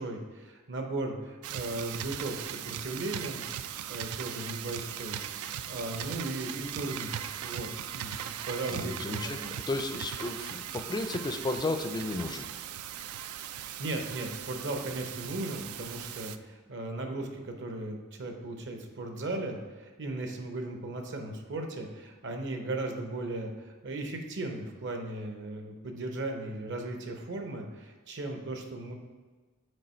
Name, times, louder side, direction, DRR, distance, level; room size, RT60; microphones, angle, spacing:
voice 1, 0.0-3.4 3.9-7.1 7.4-7.7 7.9-9.5 13.5-28.9, right 2 dB, 60° right, 4 dB, 0.9 m, -37 dB
sound 1, 1.4-16.4, right 10 dB, 85° right, 0.3 m, -39 dB
voice 2, 8.7-12.5, left 2 dB, 20° left, 7 dB, 0.4 m, -33 dB
6.5 x 4.4 x 4.4 m, 1.4 s
head